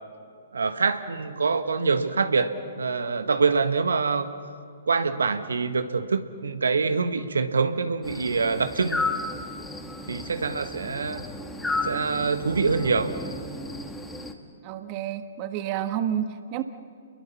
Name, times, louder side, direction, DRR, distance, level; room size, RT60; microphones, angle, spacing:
voice 1, 0.5-4.3 4.9-9.0 10.1-11.2 11.8-13.1, right 4 dB, 80° right, 9 dB, 1.5 m, -25 dB
sound 1, 8.0-14.3, left 2 dB, 10° left, 2.1 m, -33 dB
voice 2, 14.6-16.6, right 10 dB, 35° right, 9 dB, 1.4 m, -29 dB
29.5 x 22.0 x 7.2 m, 2.3 s
figure-of-eight pair, 125°, 0 cm